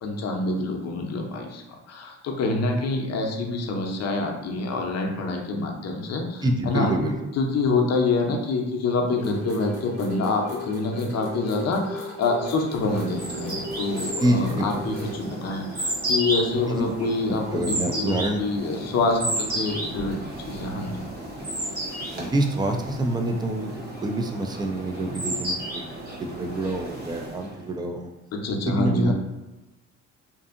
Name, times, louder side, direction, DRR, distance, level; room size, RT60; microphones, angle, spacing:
voice 1, 0.0-6.9 7.4-20.2 20.4-21.0 28.4-29.1, left 3 dB, 55° left, 2 dB, 0.6 m, -26 dB
voice 2, 6.4-7.3 14.2-14.9 16.7-16.9 17.3-18.4 22.1-28.1 28.7-29.1, right 1 dB, 15° right, 4 dB, 0.3 m, -26 dB
sound 1, 9.1-15.2, right 1 dB, 85° right, 1.3 m, -37 dB
sound 2, 12.6-27.6, right 1 dB, 30° right, 0.7 m, -33 dB
2.6 x 2.6 x 2.4 m, 1.1 s
cardioid pair, 90°, 30 cm